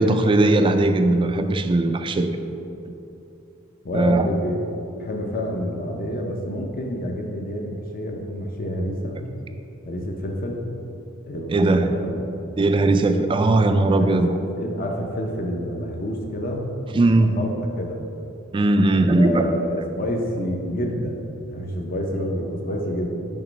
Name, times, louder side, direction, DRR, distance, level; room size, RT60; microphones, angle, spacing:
voice 1, 0.0-2.4 3.9-4.3 11.5-11.9 12.6-14.3 16.9-17.4 18.5-19.5, right 2 dB, 25° right, 8 dB, 0.3 m, -19 dB
voice 2, 3.8-9.2 9.9-10.6 11.3-12.2 14.0-16.7 17.2-18.0 18.8-21.2 21.5-23.1, equal, 45° left, 1 dB, 0.7 m, -28 dB
8.8 x 3.0 x 5.1 m, 2.8 s
head